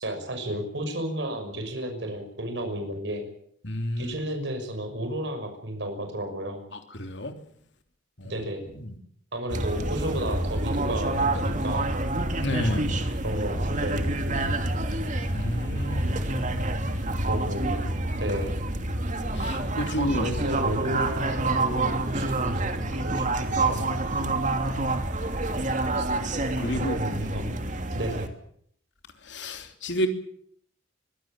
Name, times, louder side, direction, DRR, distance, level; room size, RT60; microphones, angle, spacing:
voice 1, 0.0-3.3 4.0-6.6 8.2-8.7 9.3-11.8 13.2-14.0 17.3-17.9 18.2-18.6 20.2-23.9 26.0-26.1 26.8-27.5 27.9-28.3, right 1 dB, 70° right, 5 dB, 6.2 m, -32 dB
voice 2, 3.6-4.1 6.9-7.3 8.2-8.3 8.8-8.9 12.4-12.9 15.3-16.2 19.3-20.3 24.2-24.3 26.6-27.0 29.3-30.1, left 1 dB, 70° left, 6 dB, 3.3 m, -30 dB
sound 1, 9.5-28.3, right 2 dB, 45° right, 2.8 m, -27 dB
24.5 x 17.5 x 9.1 m, 0.67 s
head